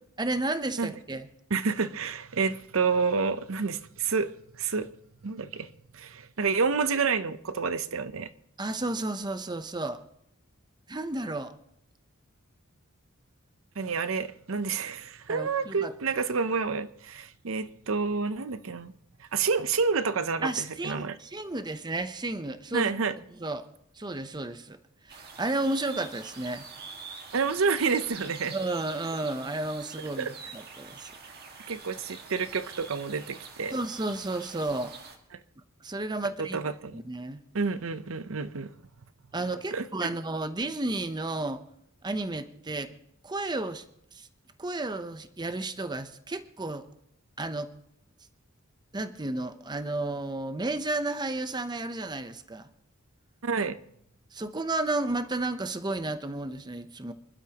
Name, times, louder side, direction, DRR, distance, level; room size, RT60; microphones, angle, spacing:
voice 1, 0.2-1.3 8.6-10.0 10.9-11.5 15.3-15.9 20.4-22.9 23.4-23.7 24.0-24.8 25.0-26.7 28.5-30.3 30.5-31.1 33.7-34.9 35.8-36.6 36.9-37.4 39.3-41.6 42.0-42.9 43.2-43.8 44.1-44.3 44.6-46.9 47.4-47.7 48.9-52.7 54.3-57.1, right 2 dB, 20° right, 0.7 m, -32 dB
voice 2, 1.5-4.9 5.2-8.3 13.8-18.9 19.2-21.2 22.7-23.1 27.3-28.5 30.2-30.3 31.7-33.7 36.4-37.0 37.5-38.7 39.7-39.9 53.4-53.8, right 5 dB, 70° right, 0.7 m, -29 dB
sound 1, 25.1-35.2, right 5 dB, 50° right, 1.8 m, -45 dB
26.5 x 12.0 x 2.9 m
head